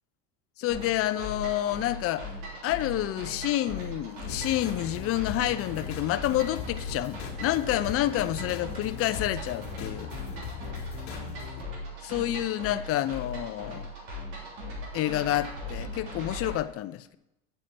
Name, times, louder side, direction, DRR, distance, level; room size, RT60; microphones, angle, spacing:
voice 1, 0.6-2.2 2.6-10.1 12.0-13.9 14.9-17.2, left 14 dB, 45° left, 0.6 m, -29 dB
sound 1, 0.7-16.6, left 1 dB, 80° right, 3.3 m, -39 dB
sound 2, 4.2-11.6, left 7 dB, 75° left, 1.4 m, -40 dB
8.5 x 6.5 x 4.3 m
supercardioid pair, 90°, 31 cm